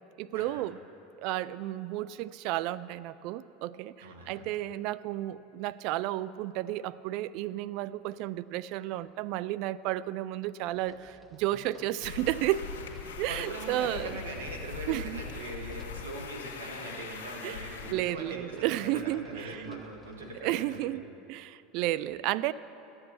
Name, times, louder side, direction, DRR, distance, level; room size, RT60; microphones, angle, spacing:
voice 1, 0.2-0.8 1.2-12.6 13.2-14.2 14.9-15.2 17.4-17.7 17.9-19.8 20.4-21.0 21.3-22.5, right 15 dB, 60° right, 17 dB, 0.3 m, -32 dB
voice 2, 4.0-4.5 13.0-21.0, right 1 dB, 90° right, 1 dB, 1.8 m, -41 dB
sound 1, 10.7-20.4, left 1 dB, ahead, 1.3 m, -54 dB
sound 2, 12.0-17.9, left 6 dB, 80° left, 1.5 m, -41 dB
13.0 x 7.9 x 7.2 m, 2.9 s
hypercardioid pair, 90°, 0 cm